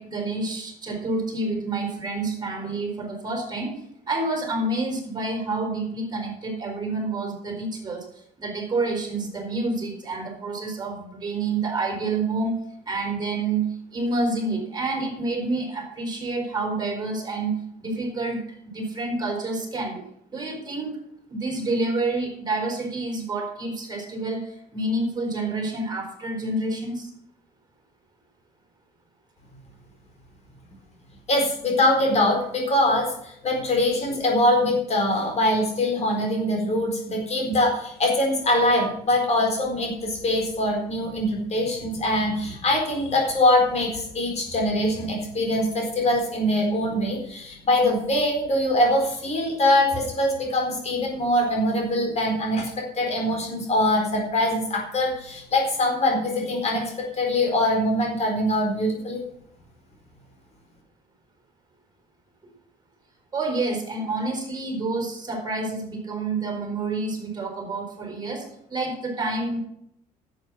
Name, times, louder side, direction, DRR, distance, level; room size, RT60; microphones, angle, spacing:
voice 1, 0.0-3.7 4.1-8.1 8.4-12.6 12.9-20.0 20.3-21.0 21.3-27.1 63.3-69.7, right 2 dB, 25° right, 2 dB, 4.3 m, -28 dB
voice 2, 31.3-59.2, left 1 dB, 40° left, 0 dB, 4.2 m, -23 dB
11.0 x 8.0 x 6.2 m, 0.74 s
cardioid pair, 110°, 17 cm